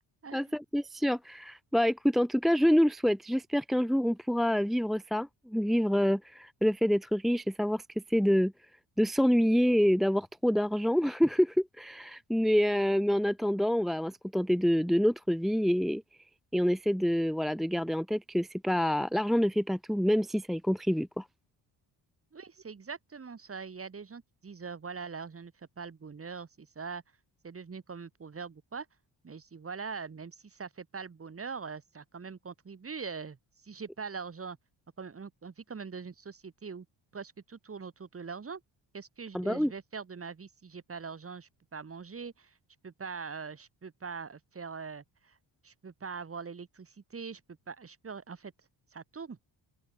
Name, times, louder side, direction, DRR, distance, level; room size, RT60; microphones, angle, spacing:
voice 1, 0.3-8.5 9.0-16.0 16.5-21.2 39.3-39.7, equal, ahead, 0.6 m, -27 dB
voice 2, 22.3-27.0 27.4-28.9 29.2-33.4 33.6-34.6 35.0-36.9 37.1-38.6 38.9-42.5 42.8-45.4 45.6-47.4 47.7-48.5 48.9-49.4, right 5 dB, 30° right, 7.8 m, -42 dB
open air
wide cardioid pair, 180°, 46 cm